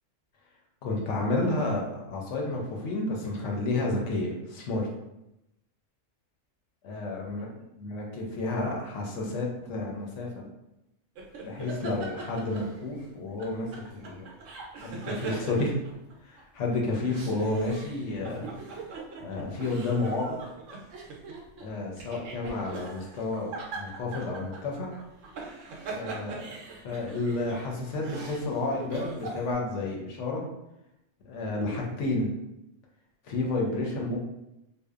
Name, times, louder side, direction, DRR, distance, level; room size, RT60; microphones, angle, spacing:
voice 1, 0.8-4.9 6.8-7.5 7.8-10.4 11.4-14.3 14.8-15.8 16.2-18.5 19.2-20.4 21.6-24.9 25.9-26.5 26.8-30.4 31.2-32.3 33.3-34.2, left 2 dB, 75° left, -1 dB, 0.9 m, -31 dB
sound 1, 11.2-13.0 13.4-16.4 16.9-29.5, right 4 dB, 75° right, 0.9 m, -41 dB
2.7 x 2.1 x 2.3 m, 0.88 s
omnidirectional pair, 1.3 m